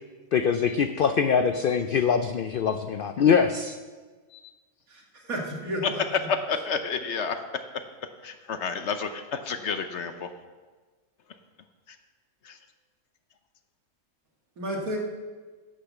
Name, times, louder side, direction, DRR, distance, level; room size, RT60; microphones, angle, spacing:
voice 1, 0.3-3.8, left 6 dB, 75° left, 9 dB, 0.5 m, -23 dB
voice 2, 4.9-6.0 14.6-15.0, equal, 80° right, 0 dB, 2.2 m, -32 dB
voice 3, 5.8-7.6 8.2-10.3 11.9-12.0 12.4-12.6, left 5 dB, 60° left, 9 dB, 0.9 m, -30 dB
10.5 x 6.8 x 7.2 m, 1.4 s
omnidirectional pair, 1.5 m